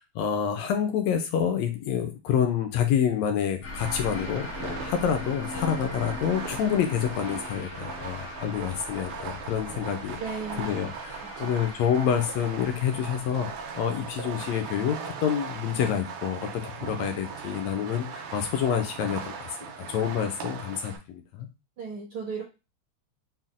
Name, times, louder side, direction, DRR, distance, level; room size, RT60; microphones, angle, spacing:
voice 1, 0.0-10.2 10.6-19.5 19.9-21.5, left 8 dB, 80° left, 6 dB, 1.7 m, -28 dB
sound 1, 3.6-14.8, left 3 dB, 65° left, 1.0 m, -41 dB
Fireworks, 3.7-21.0, right 6 dB, 90° right, 2.0 m, -39 dB
voice 2, 10.2-10.8 11.2-11.6 21.8-22.4, right 5 dB, 70° right, -3 dB, 1.2 m, -36 dB
5.6 x 2.0 x 2.4 m, 0.28 s
omnidirectional pair, 3.3 m